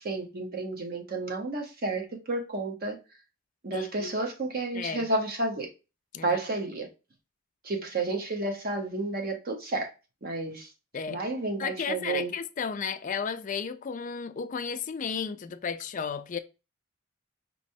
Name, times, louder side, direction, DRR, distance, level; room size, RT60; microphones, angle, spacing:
voice 1, 0.0-3.0 3.6-5.7 6.2-6.9 7.6-9.9 10.2-10.7 11.1-12.3, right 2 dB, 45° right, 0.8 m, -31 dB
voice 2, 3.7-4.1 4.7-5.1 6.1-6.4 10.9-11.2 11.6-16.4, left 6 dB, 40° left, 0.4 m, -33 dB
5.3 x 3.0 x 2.7 m
head